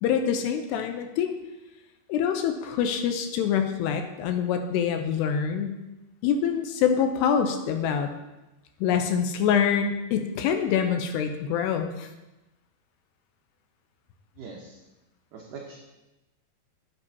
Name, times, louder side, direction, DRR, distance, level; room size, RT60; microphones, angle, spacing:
voice 1, 0.0-1.3 2.1-5.7 6.2-8.1 8.8-12.1, left 7 dB, 80° left, 6 dB, 2.6 m, -25 dB
voice 2, 14.4-14.8 15.3-15.8, right 4 dB, 80° right, -1 dB, 1.9 m, -42 dB
11.5 x 8.3 x 2.8 m, 1.0 s
omnidirectional pair, 5.1 m